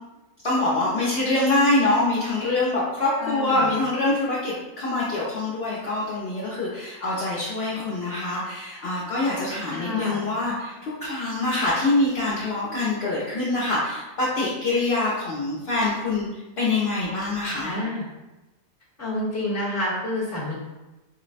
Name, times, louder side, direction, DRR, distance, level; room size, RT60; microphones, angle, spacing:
voice 1, 0.4-16.3 16.6-17.7, left 2 dB, 60° left, -7 dB, 0.8 m, -25 dB
voice 2, 3.2-3.7 9.7-10.3 17.6-18.0 19.0-20.5, left 1 dB, 15° left, -7 dB, 0.8 m, -29 dB
4.6 x 2.0 x 2.4 m, 1.1 s
omnidirectional pair, 1.4 m